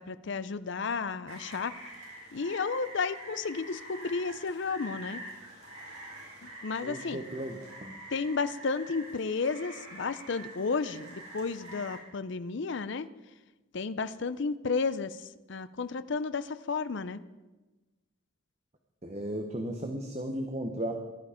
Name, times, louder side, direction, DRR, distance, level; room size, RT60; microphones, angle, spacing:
voice 1, 0.0-1.8 2.3-5.2 6.4-7.2 8.1-13.1 13.7-15.2 15.5-17.2, left 4 dB, 55° left, 14 dB, 0.5 m, -32 dB
Rain, 1.3-12.0, right 1 dB, 80° right, 5.0 m, -46 dB
voice 2, 6.8-8.0 19.0-20.9, right 1 dB, 30° right, 4 dB, 1.0 m, -35 dB
16.0 x 11.5 x 5.0 m, 1.2 s
head